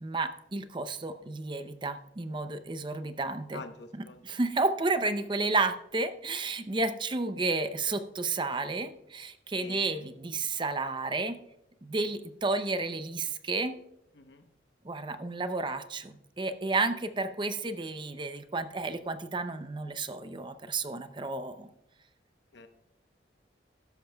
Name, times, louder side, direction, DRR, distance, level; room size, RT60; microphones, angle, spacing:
voice 1, 0.0-3.6 3.9-11.4 11.8-13.7 14.8-21.7, right 3 dB, 25° right, 10 dB, 0.5 m, -32 dB
voice 2, 3.5-4.2 9.6-9.9 14.2-14.4 22.5-22.7, left 3 dB, 65° left, 8 dB, 0.9 m, -46 dB
13.0 x 10.5 x 2.2 m, 0.82 s
head